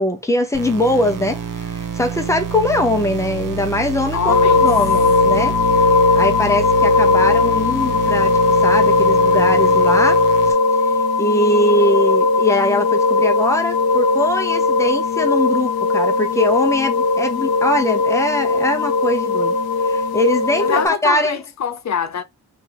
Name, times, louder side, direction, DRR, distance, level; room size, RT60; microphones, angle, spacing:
voice 1, 0.0-4.3 4.6-5.6 6.1-10.2 10.5-10.6 11.2-19.6 19.8-21.4, left 1 dB, 5° left, 0.7 m, -21 dB
sound 1, 0.5-10.5, right 8 dB, 50° right, 0.6 m, -28 dB
voice 2, 4.1-4.7 20.6-22.2, left 7 dB, 45° left, 0.5 m, -24 dB
sound 2, 4.3-20.9, left 3 dB, 65° left, 0.8 m, -17 dB
2.9 x 2.7 x 4.0 m
wide cardioid pair, 125°, 40 cm